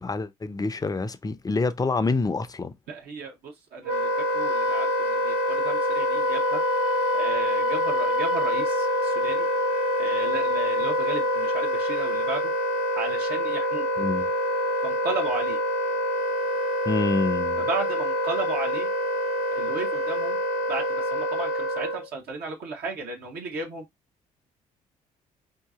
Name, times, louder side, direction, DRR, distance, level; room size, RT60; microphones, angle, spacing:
voice 1, 0.0-2.7 14.0-14.3 16.9-17.7, left 3 dB, 20° left, 0.5 m, -27 dB
voice 2, 2.9-9.5 10.0-12.5 13.0-13.9 14.8-15.6 17.6-18.9 19.5-20.4 20.7-23.9, right 4 dB, 60° right, 1.0 m, -35 dB
Wind instrument woodwind instrument, 3.8-22.1, equal, 85° right, 1.1 m, -25 dB
2.8 x 2.7 x 3.5 m
hypercardioid pair, 50°, 18 cm